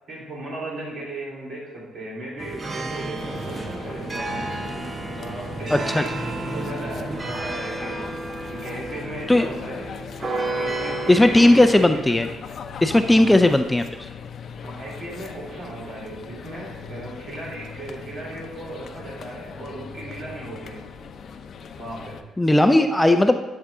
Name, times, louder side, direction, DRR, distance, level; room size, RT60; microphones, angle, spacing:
voice 1, 0.1-4.5 5.1-8.1 8.5-9.9 10.6-12.1 13.1-13.3 14.6-20.8 21.8-22.2, right 1 dB, 60° right, -4 dB, 3.4 m, -36 dB
sound 1, 2.4-11.8, right 2 dB, 30° right, 0.7 m, -31 dB
sound 2, 3.2-22.2, left 6 dB, 60° left, 0.6 m, -39 dB
voice 2, 11.1-12.3 12.8-13.8 22.4-23.4, left 1 dB, 10° left, 7 dB, 0.5 m, -16 dB
11.0 x 6.6 x 3.7 m, 1.1 s
cardioid pair, 90°, 0 cm